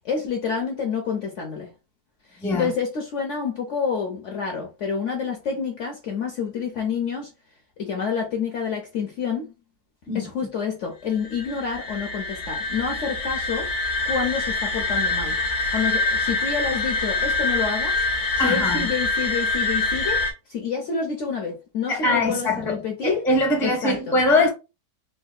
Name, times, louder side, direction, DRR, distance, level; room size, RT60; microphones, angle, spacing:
voice 1, 0.0-1.7 2.3-7.3 7.8-9.5 10.1-13.7 14.0-15.4 15.7-20.2 20.5-23.3 23.6-24.2, left 6 dB, 60° left, 0.8 m, -28 dB
voice 2, 2.4-2.7 10.1-10.3 18.4-18.9 21.9-24.5, left 2 dB, 5° left, 0.4 m, -22 dB
sound 1, 11.2-20.3, left 2 dB, 80° left, 1.4 m, -25 dB
3.7 x 2.3 x 2.4 m
omnidirectional pair, 1.8 m